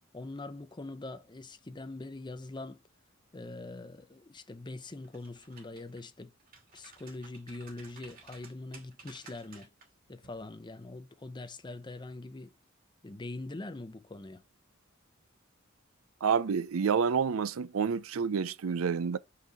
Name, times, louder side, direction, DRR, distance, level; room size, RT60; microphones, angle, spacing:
voice 1, 0.1-2.8 3.3-6.3 6.7-9.7 10.1-12.5 13.0-14.4, left 2 dB, 20° left, 0.7 m, -43 dB
sound 1, 5.0-6.0 6.4-9.9 10.2-10.4, right 4 dB, 45° right, 2.6 m, -54 dB
voice 2, 16.2-19.2, right 6 dB, 85° right, 0.5 m, -28 dB
5.7 x 4.7 x 4.9 m
head